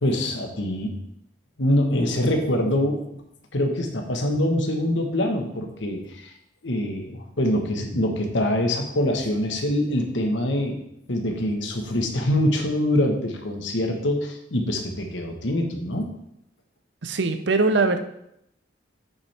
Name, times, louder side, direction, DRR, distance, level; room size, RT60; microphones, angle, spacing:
voice 1, 0.0-1.0 1.6-3.2 3.5-6.3 6.6-10.8 11.1-16.1, left 1 dB, 85° left, 4 dB, 1.3 m, -24 dB
voice 2, 17.0-18.0, right 3 dB, 75° right, 9 dB, 0.7 m, -21 dB
8.6 x 7.2 x 3.4 m, 0.78 s
head